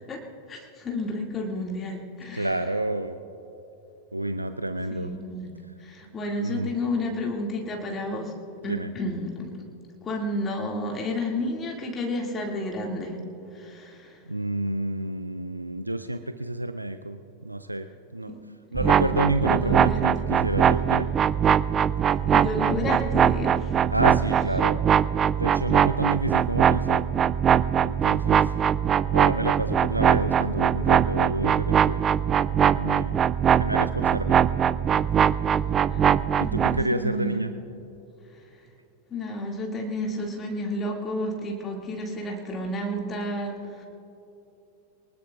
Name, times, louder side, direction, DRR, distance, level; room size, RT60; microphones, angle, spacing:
voice 1, 0.5-2.5 4.9-5.5 5.8-8.3 8.6-9.5 10.0-13.2 13.5-14.2 18.3-18.4 18.8-19.1 19.4-20.0 22.3-23.9 35.5-35.6 35.9-36.1 36.4-37.4 38.3-38.4 39.1-43.8, left 1 dB, 25° left, 0 dB, 2.1 m, -31 dB
voice 2, 2.3-3.2 4.1-5.1 6.4-6.7 8.6-8.9 14.3-18.3 18.7-21.1 23.9-24.9 25.4-27.1 27.8-28.5 29.1-32.0 32.8-33.2 33.6-34.4 36.4-37.5, right 1 dB, 85° right, 10 dB, 0.5 m, -29 dB
sound 1, 18.8-36.8, right 8 dB, 25° right, 0.3 m, -22 dB
24.0 x 19.5 x 2.4 m, 2.9 s
figure-of-eight pair, 90°, 0 cm